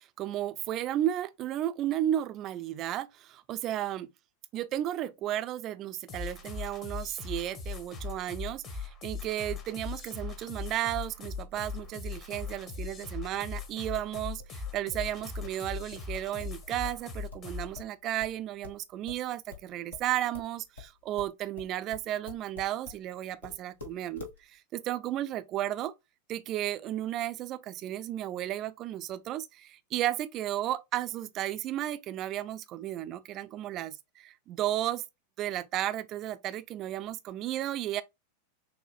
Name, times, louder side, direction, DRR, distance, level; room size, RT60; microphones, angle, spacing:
voice 1, 0.2-3.1 3.5-4.1 4.5-8.6 9.0-14.4 14.7-19.4 19.7-20.6 21.1-24.2 24.7-25.9 26.3-29.4 29.9-33.9 34.6-35.0 35.4-38.0, right 13 dB, 35° right, 0.5 m, -33 dB
sound 1, 6.1-17.8, left 5 dB, 30° left, 1.2 m, -40 dB
sound 2, 11.5-17.0 17.3-23.0 23.4-24.4, left 5 dB, 70° left, 1.4 m, -48 dB
6.3 x 2.7 x 2.4 m
figure-of-eight pair, 90°, 0 cm